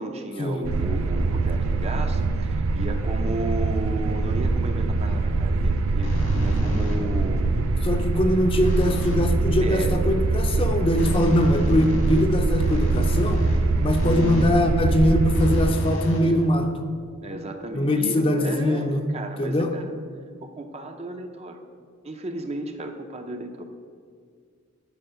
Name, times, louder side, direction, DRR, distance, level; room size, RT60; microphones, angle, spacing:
voice 1, 0.0-7.7 9.6-10.0 16.2-16.5 17.2-19.9 20.4-21.6 22.0-23.6, right 2 dB, 30° right, 6 dB, 0.5 m, -34 dB
sound 1, 0.6-15.7, right 3 dB, 80° right, 0.4 m, -23 dB
sound 2, 6.0-7.3 8.6-9.3 11.0-14.6 15.3-16.8, equal, 75° left, 1.7 m, -31 dB
voice 2, 7.8-13.4 13.8-16.7 17.7-19.0 19.4-19.7, left 1 dB, 25° left, 5 dB, 0.5 m, -22 dB
9.1 x 4.4 x 5.6 m, 2.1 s
head